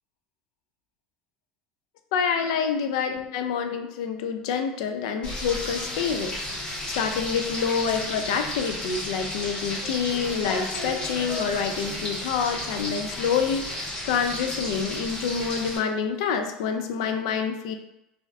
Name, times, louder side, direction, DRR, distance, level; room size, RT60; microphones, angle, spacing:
voice 1, 2.1-6.3 6.6-17.8, left 6 dB, 85° left, 6 dB, 0.3 m, -27 dB
Frying (food), 5.2-15.8, left 1 dB, 30° left, 1.3 m, -33 dB
3.1 x 2.5 x 2.5 m, 0.87 s
supercardioid pair, 105°, 3 cm